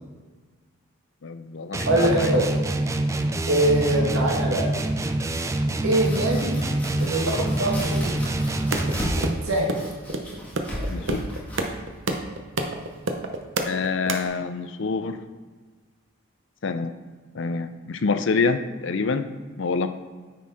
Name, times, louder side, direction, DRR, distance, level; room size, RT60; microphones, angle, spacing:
voice 1, 1.2-2.3 10.9-11.2 13.6-15.2 16.6-16.9 17.3-19.3 19.6-19.9, left 4 dB, 60° left, 10 dB, 0.5 m, -26 dB
sound 1, 1.7-9.5, right 1 dB, 15° right, 0.3 m, -26 dB
voice 2, 1.9-2.5 3.5-4.7 5.8-6.5 7.0-8.1 9.3-9.8, right 1 dB, 75° right, -1 dB, 1.6 m, -23 dB
Domestic sounds home sounds, 5.7-13.4, equal, 5° left, 1.5 m, -36 dB
sound 2, 8.7-14.2, right 2 dB, 60° right, 0.7 m, -27 dB
9.2 x 4.3 x 4.8 m, 1.4 s
head